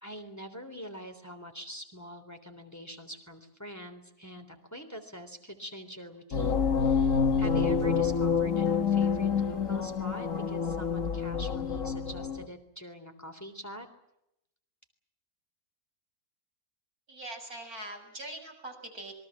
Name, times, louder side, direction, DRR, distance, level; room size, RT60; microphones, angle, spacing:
voice 1, 0.0-13.9, equal, 10° left, 6 dB, 3.4 m, -44 dB
sound 1, 6.3-12.5, left 6 dB, 60° left, 2.1 m, -27 dB
voice 2, 17.1-19.1, right 1 dB, 80° right, 3 dB, 7.3 m, -42 dB
27.0 x 23.0 x 7.4 m, 0.81 s
omnidirectional pair, 1.5 m